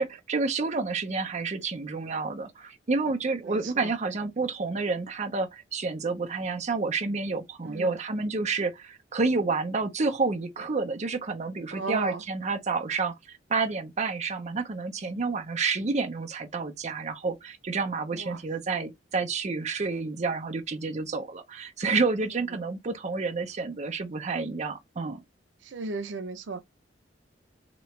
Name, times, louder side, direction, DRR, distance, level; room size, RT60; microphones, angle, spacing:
voice 1, 0.0-13.1 13.5-25.2, right 4 dB, 40° right, 0.6 m, -29 dB
voice 2, 3.4-3.9 7.6-8.0 11.7-12.2 18.1-18.4 25.6-26.6, right 3 dB, 85° right, 0.6 m, -35 dB
3.3 x 3.0 x 3.1 m
head